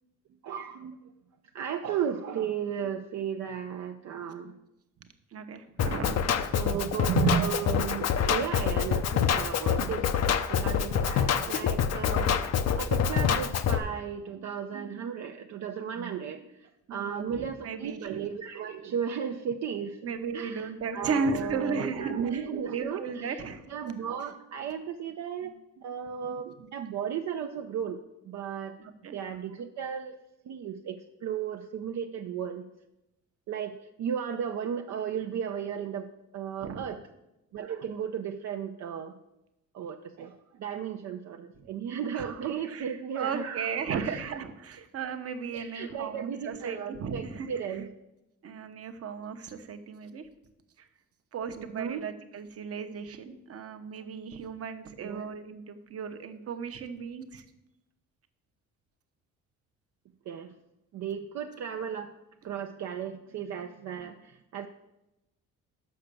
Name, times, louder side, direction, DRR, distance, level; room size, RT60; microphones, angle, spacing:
voice 1, 0.4-1.1 1.5-4.6 5.8-5.9 6.5-10.1 10.5-20.0 20.3-23.4 23.7-28.0 28.2-28.8 29.1-30.2 30.4-32.6 33.5-37.0 37.5-39.1 39.7-44.2 45.5-47.9 51.6-52.0 55.0-55.3 60.3-60.5 60.9-62.1 62.4-64.7, right 8 dB, 65° right, 4 dB, 0.6 m, -35 dB
voice 2, 5.3-6.6 16.9-18.1 20.0-23.6 28.8-29.2 36.6-36.9 41.6-41.7 42.1-47.5 48.4-50.3 50.8-50.9 51.3-57.4, right 5 dB, 50° right, 8 dB, 0.9 m, -35 dB
Drum kit, 5.8-13.8, left 7 dB, 55° left, 0.7 m, -26 dB
6.6 x 5.8 x 6.8 m, 0.91 s
cardioid pair, 90°, 30 cm